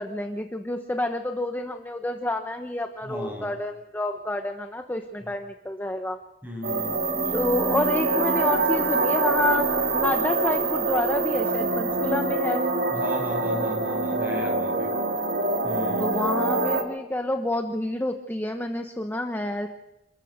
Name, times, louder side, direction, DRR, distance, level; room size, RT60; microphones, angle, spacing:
voice 1, 0.0-6.2 7.3-12.7 14.8-15.0 16.0-19.7, left 1 dB, 10° left, 5 dB, 1.1 m, -29 dB
voice 2, 3.0-3.6 5.2-5.3 6.4-7.0 7.3-7.4 12.9-15.0 15.6-16.1, left 1 dB, 10° right, 1 dB, 6.9 m, -36 dB
sound 1, 6.6-16.8, right 3 dB, 80° right, 3.1 m, -25 dB
28.5 x 14.0 x 6.5 m, 0.94 s
head